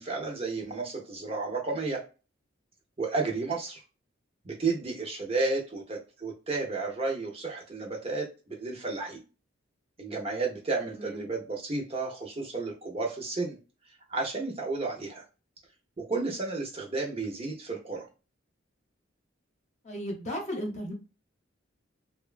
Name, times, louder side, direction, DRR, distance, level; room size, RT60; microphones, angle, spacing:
voice 1, 0.0-2.0 3.0-3.8 4.4-9.2 10.0-13.6 14.1-15.2 16.0-18.1, right 3 dB, 30° right, 0.6 m, -32 dB
voice 2, 19.8-20.9, equal, 35° left, 0.8 m, -35 dB
2.9 x 2.2 x 2.3 m
head